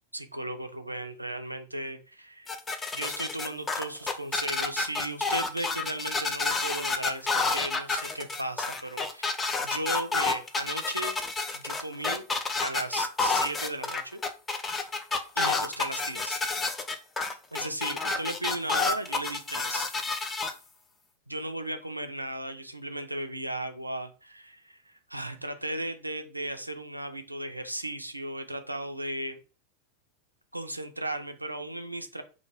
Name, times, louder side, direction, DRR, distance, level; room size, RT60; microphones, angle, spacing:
voice 1, 0.1-2.5 2.9-9.3 9.6-11.2 11.5-12.2 12.6-14.2 15.4-16.4 17.5-19.9 21.3-29.4 30.5-32.2, right 1 dB, 85° right, 8 dB, 0.3 m, -36 dB
sound 1, 2.5-20.5, left 3 dB, 15° left, 0.4 m, -29 dB
2.2 x 2.1 x 3.0 m, 0.34 s
figure-of-eight pair, 90°, 0 cm